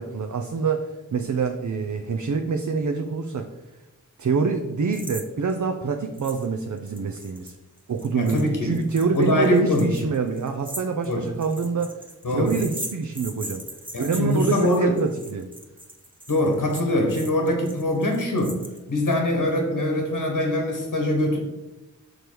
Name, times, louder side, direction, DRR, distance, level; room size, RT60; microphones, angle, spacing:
voice 1, 0.0-3.5 4.2-7.5 7.9-11.9 12.3-13.6 14.0-15.5, right 5 dB, 65° right, 5 dB, 0.6 m, -26 dB
sound 1, 4.9-5.2 5.5-5.6 6.2-6.5 6.8-19.1, right 1 dB, 15° right, 1.1 m, -39 dB
voice 2, 8.1-8.8 9.1-9.9 11.1-11.3 12.2-12.6 13.9-14.9 16.3-18.6 18.9-21.4, left 1 dB, 85° left, 2 dB, 1.2 m, -23 dB
6.3 x 5.1 x 4.6 m, 1.1 s
cardioid pair, 45°, 32 cm